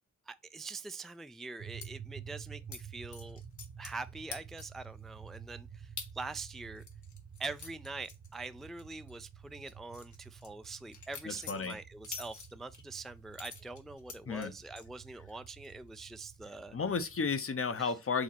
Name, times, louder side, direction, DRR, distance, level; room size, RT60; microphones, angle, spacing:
voice 1, 0.3-3.4 3.8-6.8 7.4-16.8 17.8-17.9, right 3 dB, ahead, 0.3 m, -44 dB
sound 1, 1.6-17.4, right 8 dB, 55° right, 1.1 m, -51 dB
sound 2, 1.8-1.9 2.7-2.8 3.1-4.0 4.3-4.8 5.3-5.4 6.0-6.1 6.5-8.8 9.1-9.3 9.7-12.8 13.3-14.9 15.3-15.7 16.0-16.4, left 5 dB, 80° left, 1.6 m, -47 dB
voice 2, 11.3-11.8 14.3-14.5 16.7-18.2, left 5 dB, 50° left, 0.9 m, -33 dB
5.0 x 4.1 x 6.0 m
wide cardioid pair, 130°, 29 cm